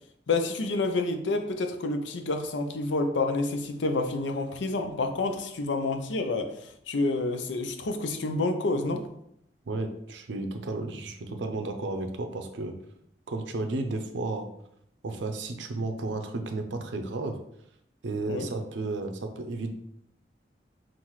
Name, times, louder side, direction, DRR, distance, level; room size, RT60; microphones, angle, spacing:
voice 1, 0.3-9.1 18.3-18.5, left 2 dB, 90° left, 6 dB, 0.5 m, -28 dB
voice 2, 9.7-12.7 13.3-14.5 15.0-17.4 18.0-19.7, right 2 dB, 85° right, 6 dB, 0.5 m, -33 dB
5.6 x 2.5 x 3.0 m, 0.76 s
head